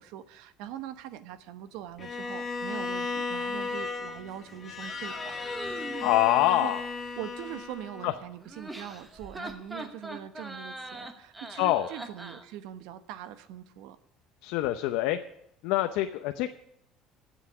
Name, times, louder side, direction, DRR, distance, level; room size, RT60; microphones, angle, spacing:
voice 1, 0.0-5.3 6.5-6.7 7.2-14.0, right 11 dB, 70° right, 11 dB, 1.1 m, -42 dB
Bowed string instrument, 2.0-8.2, left 3 dB, 25° left, 1.3 m, -35 dB
sound 1, 4.8-6.1 8.4-12.5, right 1 dB, 10° right, 1.1 m, -42 dB
voice 2, 6.0-6.8 8.0-8.1 11.6-11.9 14.4-15.2 15.6-16.5, left 14 dB, 75° left, 7 dB, 0.8 m, -25 dB
13.5 x 8.2 x 9.8 m, 0.75 s
cardioid pair, 175°, 0 cm